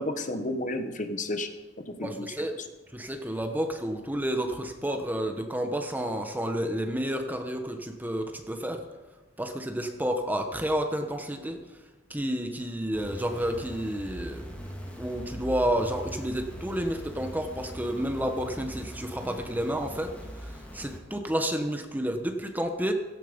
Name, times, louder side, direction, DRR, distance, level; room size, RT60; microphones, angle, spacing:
voice 1, 0.0-1.5 1.9-2.7, left 1 dB, 45° left, 7 dB, 1.4 m, -32 dB
voice 2, 2.0-2.5 2.9-8.8 9.4-11.6 12.1-14.4 15.0-20.1 20.7-22.9, equal, 10° right, 5 dB, 1.3 m, -30 dB
sound 1, 12.9-21.0, equal, 10° left, 3.3 m, -41 dB
16.5 x 16.0 x 5.3 m, 1.2 s
head